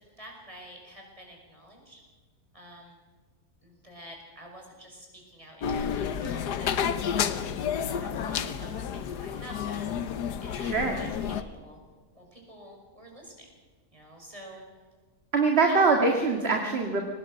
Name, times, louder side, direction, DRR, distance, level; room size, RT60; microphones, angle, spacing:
voice 1, 0.2-2.0 2.5-3.0 3.6-6.8 7.1-7.4 7.8-10.0 10.4-11.8 12.1-13.5 13.9-14.6 15.7-16.1, equal, 20° right, 1 dB, 5.4 m, -48 dB
sound 1, 5.6-11.4, left 8 dB, 90° left, 1.5 m, -30 dB
voice 2, 10.6-11.0 15.3-17.0, right 4 dB, 40° right, 2 dB, 2.0 m, -23 dB
23.0 x 18.5 x 6.3 m, 1.4 s
omnidirectional pair, 1.7 m